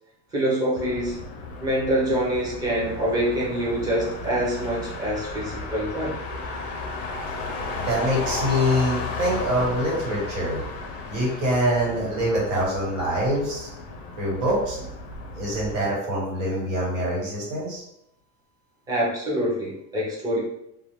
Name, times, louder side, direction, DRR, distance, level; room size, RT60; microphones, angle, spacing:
voice 1, 0.3-1.2 1.6-6.1 18.9-20.4, right 1 dB, 10° right, -5 dB, 0.5 m, -25 dB
Motor vehicle (road), 0.8-15.7, left 3 dB, 40° left, 0.4 m, -34 dB
voice 2, 7.8-10.6 11.1-13.7 14.2-14.8 15.4-17.8, equal, 80° right, -4 dB, 1.4 m, -25 dB
2.4 x 2.2 x 2.9 m, 0.78 s
cardioid pair, 170°, 37 cm